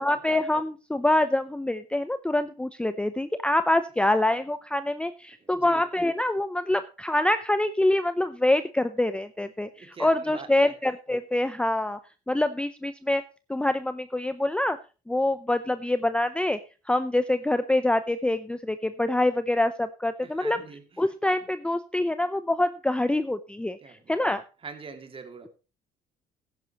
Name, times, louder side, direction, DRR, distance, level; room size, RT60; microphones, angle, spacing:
voice 1, 0.0-12.0 12.3-13.2 13.5-14.8 15.1-16.6 16.9-20.6 21.0-23.8 24.1-24.4, left 1 dB, 5° left, 11 dB, 0.6 m, -25 dB
voice 2, 5.4-5.8 9.6-10.7 20.2-21.1 23.8-24.2 24.6-25.5, right 4 dB, 30° right, 7 dB, 2.5 m, -44 dB
15.0 x 10.5 x 3.0 m, 0.32 s
cardioid pair, 110°, 17 cm